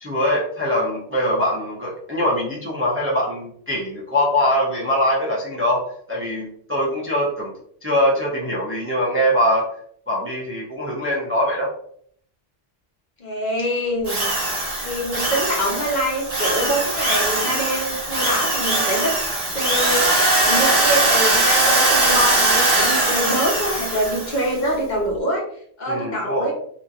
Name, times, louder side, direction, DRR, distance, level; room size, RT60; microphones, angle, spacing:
voice 1, 0.0-7.5 7.8-9.7 10.1-11.7 25.9-26.5, equal, 15° right, -5 dB, 0.5 m, -22 dB
voice 2, 13.2-14.3 14.8-19.1 19.5-25.4 25.8-26.5, equal, 50° left, -2 dB, 0.7 m, -24 dB
Drill, 14.1-24.5, right 2 dB, 70° right, 1.5 m, -20 dB
2.8 x 2.5 x 2.4 m, 0.62 s
omnidirectional pair, 1.1 m